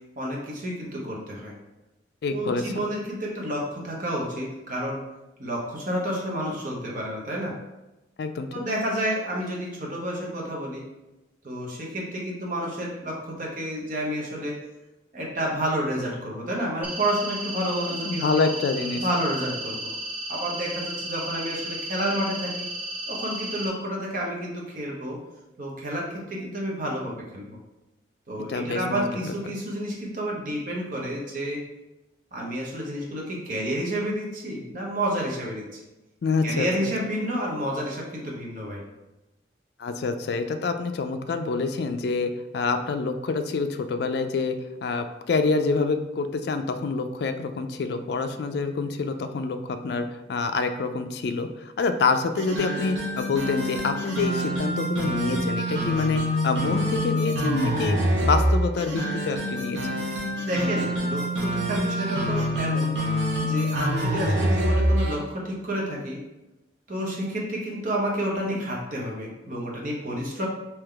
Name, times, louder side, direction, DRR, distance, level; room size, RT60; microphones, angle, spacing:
voice 1, 0.2-1.5 2.3-5.0 5.4-7.6 8.5-10.8 11.4-14.6 15.1-18.5 19.0-19.9 20.3-22.7 23.1-25.2 25.6-27.6 28.3-31.6 32.3-35.8 36.4-38.8 60.4-62.9 63.4-66.2 66.9-70.5, equal, 45° right, -3 dB, 0.9 m, -30 dB
voice 2, 2.2-2.7 8.2-8.5 18.0-19.0 28.5-29.3 36.2-36.7 39.8-44.6 44.8-60.0, left 4 dB, 60° left, 7 dB, 0.3 m, -27 dB
sound 1, 16.8-23.7, right 1 dB, 10° right, 0.5 m, -34 dB
sound 2, 52.4-65.2, equal, 85° right, 0.7 m, -26 dB
3.7 x 2.8 x 3.3 m, 1.0 s
head